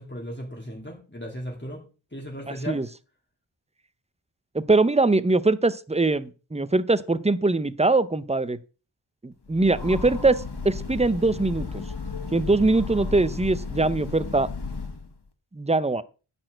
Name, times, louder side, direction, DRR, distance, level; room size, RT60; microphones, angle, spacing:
voice 1, 0.0-1.8 2.1-2.8, equal, 20° left, 2.8 m, -36 dB
voice 2, 4.5-8.6 9.2-11.7 12.3-14.5 15.5-16.0, right 2 dB, 15° right, 0.6 m, -22 dB
Train, 9.5-15.2, left 4 dB, 55° left, 1.6 m, -34 dB
10.5 x 4.3 x 7.8 m
wide cardioid pair, 55°, 49 cm